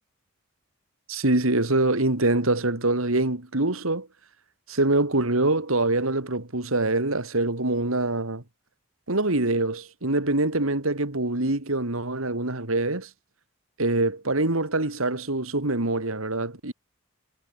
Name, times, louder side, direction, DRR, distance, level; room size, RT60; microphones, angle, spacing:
voice 1, 1.1-4.1 4.7-8.4 9.1-13.1 13.8-16.7, right 2 dB, 75° right, 2.8 m, -24 dB
head